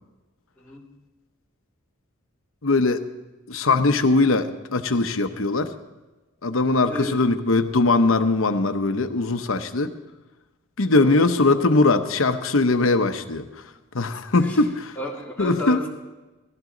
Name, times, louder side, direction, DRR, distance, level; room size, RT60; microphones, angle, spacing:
voice 1, 0.6-0.9 6.5-6.6 6.9-7.2 10.9-11.2 14.4-14.7 15.0-15.9, left 2 dB, 10° left, -4 dB, 2.1 m, -33 dB
voice 2, 2.6-3.0 3.5-5.7 6.4-9.9 10.8-13.5 13.9-14.9 15.4-15.8, left 3 dB, 70° left, 8 dB, 0.9 m, -20 dB
18.5 x 15.5 x 3.9 m, 1.1 s
head